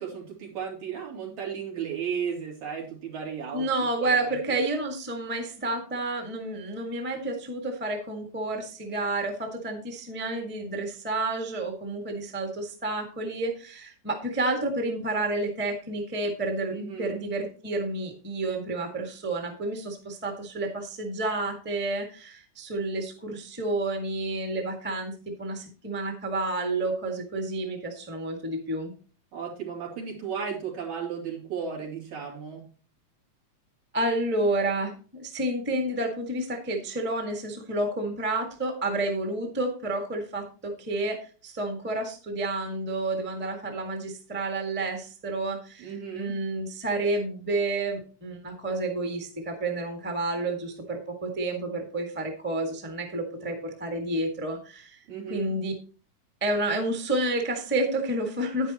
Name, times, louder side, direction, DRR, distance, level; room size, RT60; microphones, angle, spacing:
voice 1, 0.0-3.7 4.0-4.4 16.7-17.2 29.3-32.6 45.8-46.3 55.1-55.5, right 7 dB, 75° right, -1 dB, 4.4 m, -34 dB
voice 2, 3.5-28.9 33.9-55.0 55.3-55.7 56.4-58.7, right 2 dB, 5° right, 3 dB, 1.0 m, -30 dB
10.0 x 9.5 x 3.0 m, 0.37 s
omnidirectional pair, 3.4 m